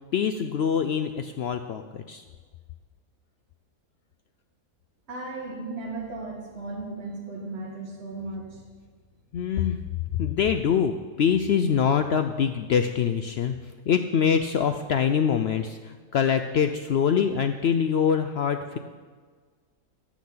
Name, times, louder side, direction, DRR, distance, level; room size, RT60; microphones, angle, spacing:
voice 1, 0.0-2.2 9.3-9.8 10.1-18.8, left 7 dB, 85° left, 8 dB, 0.5 m, -24 dB
voice 2, 5.1-8.6, right 2 dB, 45° right, -3 dB, 2.1 m, -36 dB
10.0 x 6.1 x 8.6 m, 1.5 s
omnidirectional pair, 1.6 m